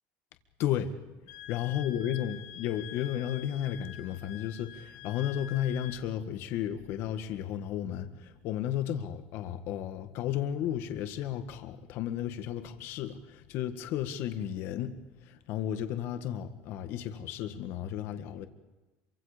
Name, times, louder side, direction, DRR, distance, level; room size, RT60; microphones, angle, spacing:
voice 1, 0.6-1.0 1.5-14.9 15.3-18.5, left 10 dB, 50° left, 8 dB, 1.8 m, -33 dB
Wind instrument woodwind instrument, 1.3-6.0, left 12 dB, 70° left, 2.0 m, -47 dB
26.5 x 24.5 x 5.2 m, 1.1 s
cardioid pair, 165°, 5 cm